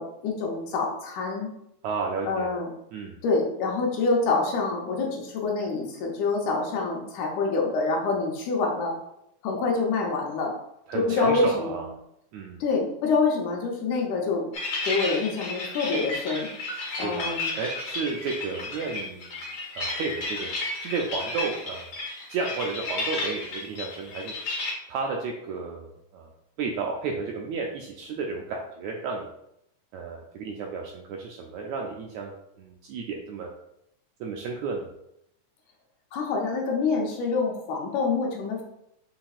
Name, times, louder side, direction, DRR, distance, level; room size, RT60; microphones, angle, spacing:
voice 1, 0.0-1.5 2.3-2.7 3.2-8.9 9.4-10.5 11.0-11.8 12.6-14.5 14.8-16.5 17.0-17.6 36.1-38.6, left 4 dB, 75° left, 0 dB, 2.3 m, -26 dB
voice 2, 1.8-2.5 2.9-3.2 10.9-11.8 12.3-12.6 16.8-19.3 19.7-20.5 20.8-21.9 22.3-24.3 24.9-25.9 26.1-26.3 26.6-29.3 29.9-33.5 34.2-34.9, right 4 dB, 85° right, 0 dB, 1.6 m, -32 dB
sound 1, 14.5-24.7, left 2 dB, 55° left, 1.9 m, -33 dB
5.9 x 3.7 x 2.4 m, 0.79 s
omnidirectional pair, 3.6 m